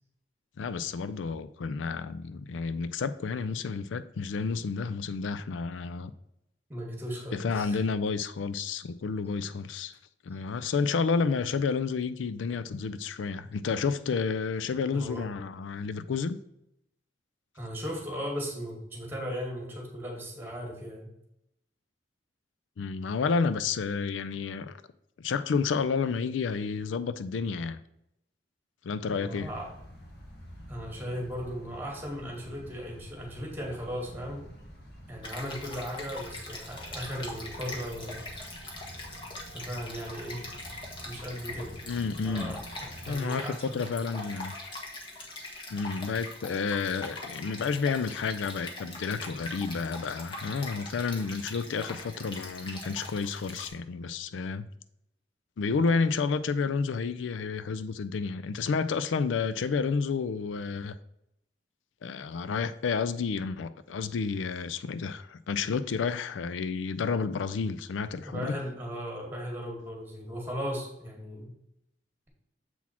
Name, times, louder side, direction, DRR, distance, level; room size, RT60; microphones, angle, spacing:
voice 1, 0.6-6.1 7.3-10.0 10.2-16.4 22.8-24.8 25.2-27.8 28.8-29.5 41.9-42.6 43.1-44.5 45.7-54.7 55.6-60.9 62.0-68.6, left 5 dB, 90° left, 0.4 m, -30 dB
voice 2, 6.7-7.8 14.9-15.3 17.5-21.1 29.1-29.7 30.7-34.5 35.1-38.3 39.5-40.5 41.0-41.7 42.2-43.9 68.3-71.5, equal, 10° right, 1.8 m, -37 dB
sound 1, 29.3-43.1, equal, 60° left, 1.3 m, -48 dB
Stream, 35.2-53.7, left 2 dB, 25° left, 1.4 m, -42 dB
7.3 x 4.1 x 4.3 m
head